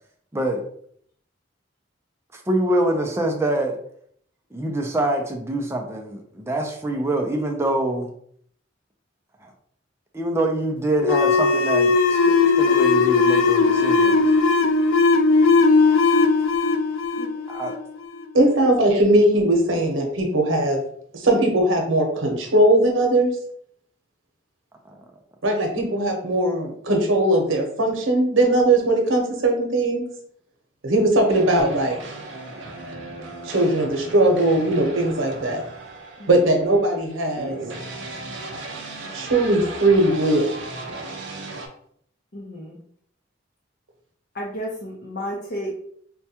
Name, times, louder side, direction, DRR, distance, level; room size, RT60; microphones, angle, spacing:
voice 1, 0.3-0.6 2.3-3.8 4.5-8.1 9.4-9.5 10.1-14.3 17.5-17.7 24.9-25.0, right 1 dB, 15° right, 2 dB, 0.4 m, -25 dB
sound 1, 11.0-18.2, left 4 dB, 85° left, 0.4 m, -18 dB
voice 2, 18.3-20.8 21.1-23.4 25.4-30.1 30.8-32.0 33.4-35.6 36.3-37.6 39.1-40.5, right 1 dB, 85° right, 2 dB, 0.9 m, -19 dB
sound 2, 31.3-41.7, right 2 dB, 70° right, 0.6 m, -36 dB
voice 3, 42.3-42.8 44.3-45.8, equal, 50° left, -4 dB, 0.7 m, -32 dB
4.5 x 2.3 x 2.8 m, 0.64 s
head